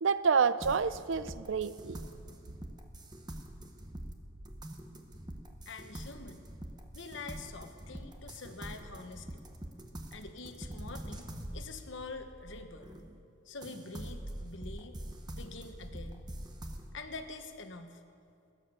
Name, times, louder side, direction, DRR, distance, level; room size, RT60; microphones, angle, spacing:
voice 1, 0.0-2.0, right 5 dB, 60° right, 15 dB, 0.5 m, -28 dB
sound 1, 0.6-13.2 13.6-16.9, right 1 dB, 20° right, 1.0 m, -45 dB
voice 2, 5.7-6.5 6.9-9.4 10.1-11.3 11.5-12.9 13.4-15.0 15.3-16.3 16.9-18.0, left 3 dB, 60° left, 7 dB, 1.2 m, -45 dB
19.5 x 10.0 x 7.0 m, 2.6 s
head